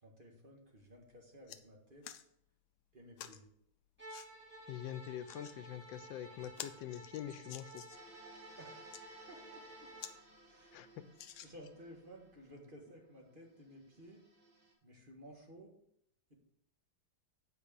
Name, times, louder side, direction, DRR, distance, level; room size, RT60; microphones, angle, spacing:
voice 1, 0.0-2.1 2.9-3.4 8.6-8.8 9.3-9.9 10.5-10.8 11.4-14.2 14.8-15.7, equal, 30° right, 0 dB, 1.8 m, -55 dB
sound 1, 0.8-0.9 1.2-1.6 2.0-2.2 3.2-3.4 4.1-4.3 5.0-5.6 6.0-6.1 6.4-8.1 8.7-9.0 9.6-9.7 10.0-10.2 10.5-10.6 11.1-11.9 12.5-12.6, left 10 dB, 70° left, 1.1 m, -50 dB
Bowed string instrument, 4.0-10.2, right 2 dB, 5° right, 2.3 m, -54 dB
voice 2, 4.7-7.8 10.7-10.9, left 11 dB, 85° left, 12 dB, 1.4 m, -44 dB
sound 2, 7.9-14.7, right 1 dB, 55° right, 2.2 m, -62 dB
9.1 x 4.7 x 6.9 m, 0.70 s
omnidirectional pair, 2.0 m